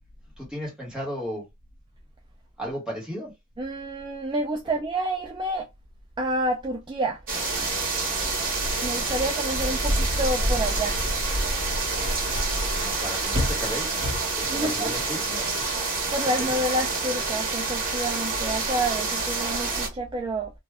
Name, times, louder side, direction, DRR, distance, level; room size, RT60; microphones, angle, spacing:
voice 1, 0.4-1.4 2.6-3.3 9.9-10.0 12.7-14.0 14.3-15.8 16.4-16.5, equal, 5° right, 1.3 m, -35 dB
voice 2, 3.6-5.7 6.2-7.2 8.8-11.0 14.5-14.9 15.8-20.5, right 1 dB, 25° right, 0.4 m, -29 dB
sound 1, 7.3-19.9, right 2 dB, 45° right, 1.2 m, -27 dB
2.5 x 2.3 x 3.3 m
head